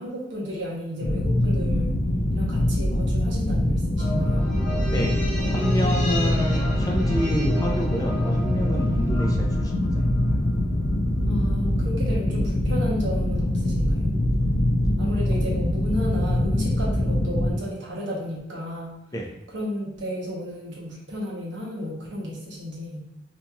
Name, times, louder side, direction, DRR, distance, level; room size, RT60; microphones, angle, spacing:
voice 1, 0.0-1.9 2.3-4.4 11.3-14.2 15.0-19.0 19.5-23.1, equal, 70° right, -3 dB, 0.9 m, -33 dB
sound 1, 1.0-17.5, left 1 dB, 70° left, 0.5 m, -23 dB
sound 2, 4.0-10.6 10.8-10.9, left 1 dB, 35° left, 1.0 m, -34 dB
voice 2, 5.5-10.2 19.1-19.3, equal, 20° left, 0 dB, 0.4 m, -29 dB
2.9 x 2.6 x 2.3 m, 0.97 s
head